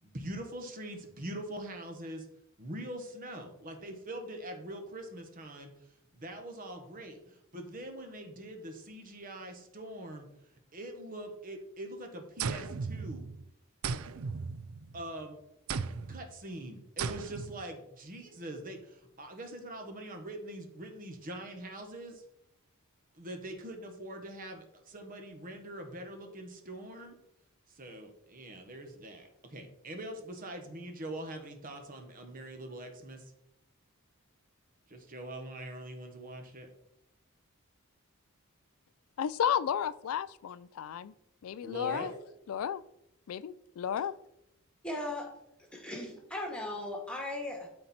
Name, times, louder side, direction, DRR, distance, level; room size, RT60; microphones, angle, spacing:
voice 1, 0.0-2.3 2.6-5.7 6.1-10.3 10.7-13.2 14.9-15.4 16.1-22.2 23.1-27.1 27.7-33.3 34.9-36.7 41.6-42.2, right 1 dB, 40° right, 4 dB, 1.3 m, -43 dB
sound 1, 12.4-13.4 13.8-15.1 15.7-16.2 17.0-17.6, right 5 dB, 75° right, 0.5 m, -36 dB
voice 2, 39.2-41.1 41.4-42.1 42.5-42.8 43.3-44.1, left 8 dB, 70° left, 16 dB, 0.3 m, -33 dB
voice 3, 44.8-45.3 45.7-47.7, left 1 dB, 5° left, 1 dB, 1.7 m, -37 dB
12.0 x 4.4 x 4.3 m, 0.81 s
head